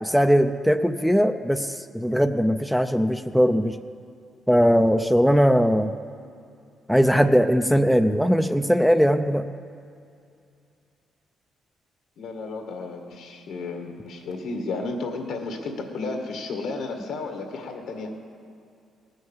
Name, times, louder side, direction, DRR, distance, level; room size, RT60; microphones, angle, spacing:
voice 1, 0.0-3.8 4.5-5.9 6.9-9.4, equal, ahead, 8 dB, 0.5 m, -20 dB
voice 2, 12.2-18.1, left 3 dB, 75° left, 3 dB, 1.9 m, -33 dB
19.0 x 6.5 x 7.3 m, 2.5 s
cardioid pair, 90°, 0 cm